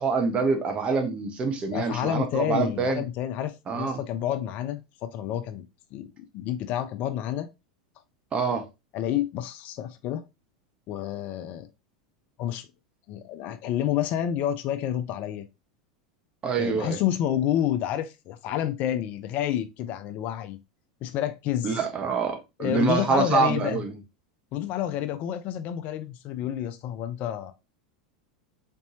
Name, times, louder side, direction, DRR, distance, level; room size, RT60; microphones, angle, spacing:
voice 1, 0.0-3.0 3.7-4.0 8.3-8.7 16.4-17.0 21.6-24.0, right 4 dB, 30° right, 1.1 m, -26 dB
voice 2, 1.7-5.7 5.9-7.5 8.9-10.2 10.9-11.7 12.4-12.7 13.1-15.4 16.6-20.6 21.0-21.8 22.6-23.8 24.5-27.5, left 11 dB, 45° left, 0.5 m, -29 dB
4.1 x 3.3 x 2.8 m
hypercardioid pair, 95°, 4 cm